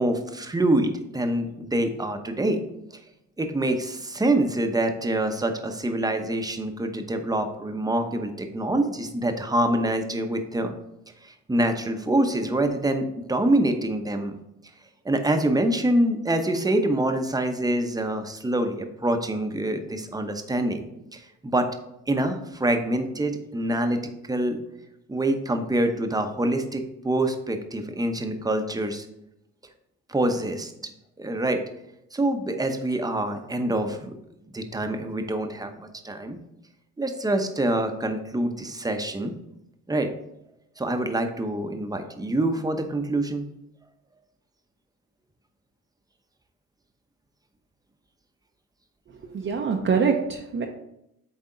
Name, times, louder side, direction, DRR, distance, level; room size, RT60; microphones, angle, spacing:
voice 1, 0.0-2.6 2.9-3.0 3.4-10.7 11.2-14.4 15.0-20.8 21.1-21.7 22.1-24.0 24.3-24.6 25.1-29.1 30.1-31.6 32.1-34.1 34.5-36.4 37.0-39.3 39.9-40.1 40.8-43.4, right 1 dB, 10° right, 6 dB, 0.8 m, -25 dB
voice 2, 49.3-50.7, right 5 dB, 40° right, 2 dB, 0.7 m, -24 dB
8.3 x 3.5 x 3.8 m, 0.83 s
cardioid pair, 90°, 30 cm